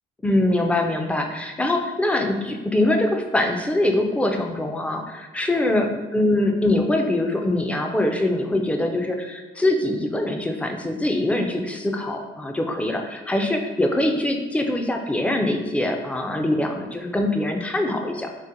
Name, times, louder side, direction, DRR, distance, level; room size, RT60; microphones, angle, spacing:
voice 1, 0.2-18.3, left 1 dB, 5° left, 3 dB, 0.3 m, -23 dB
3.9 x 2.1 x 2.5 m, 1.2 s
cardioid pair, 90°, 20 cm